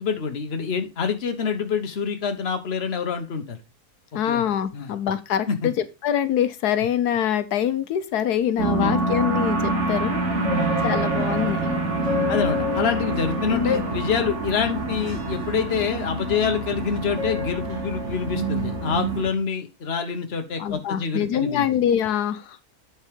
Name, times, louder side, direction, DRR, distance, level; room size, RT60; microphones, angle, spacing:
voice 1, 0.0-3.6 4.2-4.4 4.7-4.9 5.5-5.7 8.8-8.9 10.5-10.7 12.3-21.7, left 6 dB, 45° left, 7 dB, 1.4 m, -26 dB
voice 2, 4.1-10.2 10.8-11.6 13.5-13.8 20.6-22.6, left 9 dB, 90° left, 12 dB, 1.4 m, -24 dB
sound 1, 8.6-19.3, right 1 dB, 50° right, 2.0 m, -26 dB
9.1 x 4.7 x 5.2 m, 0.26 s
omnidirectional pair, 1.6 m